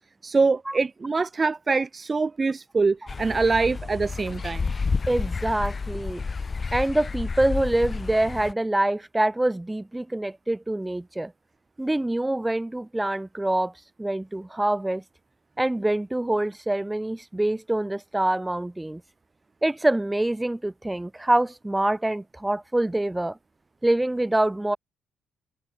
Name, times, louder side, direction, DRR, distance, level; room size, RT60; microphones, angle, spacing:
voice 1, 0.2-4.7, right 4 dB, 30° right, 3.2 m, -24 dB
sound 1, 3.1-8.5, left 4 dB, 30° left, 2.9 m, -30 dB
voice 2, 5.1-6.2 6.7-11.3 11.8-13.7 14.0-15.0 15.6-19.0 19.6-23.4 23.8-24.8, right 1 dB, 10° right, 4.6 m, -25 dB
cardioid pair, 90°, 0 cm